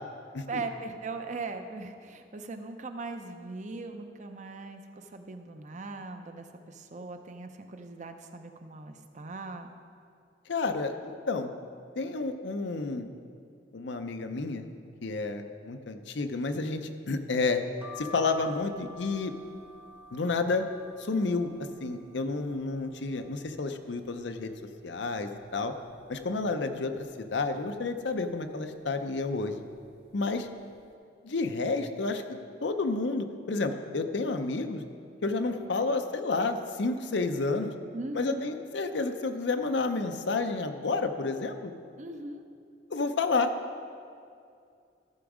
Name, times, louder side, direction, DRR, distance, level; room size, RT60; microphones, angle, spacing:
voice 1, 0.5-9.7 37.9-38.6 42.0-42.4, right 3 dB, 40° right, 6 dB, 0.6 m, -39 dB
voice 2, 10.5-11.5 12.0-13.1 13.7-14.7 15.0-17.6 18.0-19.3 20.1-20.7 21.0-21.5 21.8-24.5 24.8-25.7 26.1-29.5 30.1-30.5 31.2-34.8 35.2-37.7 38.1-41.7 42.9-43.5, left 3 dB, 70° left, 7 dB, 0.6 m, -30 dB
sound 1, 17.8-23.5 23.9-24.7 25.1-25.2 25.4-26.5 27.0-27.4 28.1-28.4 29.2-29.5 29.7-29.9, left 2 dB, 10° right, 0.8 m, -50 dB
13.5 x 6.2 x 4.9 m, 2.4 s
head